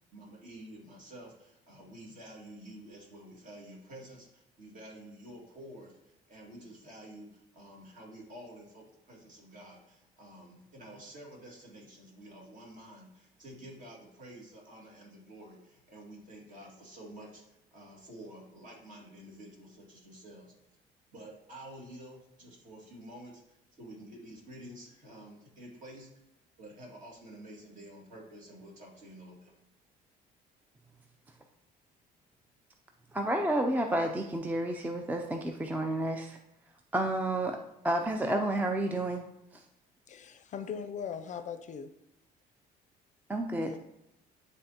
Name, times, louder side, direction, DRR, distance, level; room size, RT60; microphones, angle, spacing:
voice 1, 0.1-20.5 21.1-26.1 26.6-29.5, right 1 dB, 50° right, -2 dB, 2.1 m, -50 dB
voice 2, 33.1-36.4 36.9-37.6 37.8-39.3 39.5-39.7 43.3-43.8, right 1 dB, 10° right, 4 dB, 0.4 m, -30 dB
voice 3, 40.1-41.9 43.7-43.8, left 7 dB, 45° left, 9 dB, 0.5 m, -39 dB
10.0 x 3.5 x 2.8 m, 0.85 s
cardioid pair, 110°, 17 cm